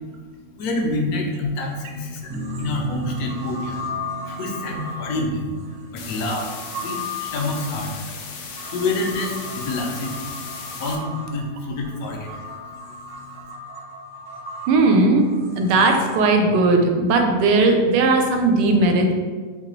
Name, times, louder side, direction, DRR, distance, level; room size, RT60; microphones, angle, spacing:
voice 1, 0.6-3.8 4.2-6.5 6.8-7.9 8.7-10.3 10.7-12.3, left 2 dB, 70° left, 0 dB, 1.1 m, -27 dB
sound 1, 2.3-8.8, right 2 dB, 10° right, 0.5 m, -36 dB
sound 2, 2.3-16.2, left 2 dB, 65° right, 0.8 m, -36 dB
sound 3, 6.0-11.0, left 5 dB, 85° left, 0.6 m, -37 dB
voice 2, 14.7-19.1, right 2 dB, 85° right, 3 dB, 1.2 m, -17 dB
4.0 x 2.9 x 3.0 m, 1.5 s
omnidirectional pair, 1.8 m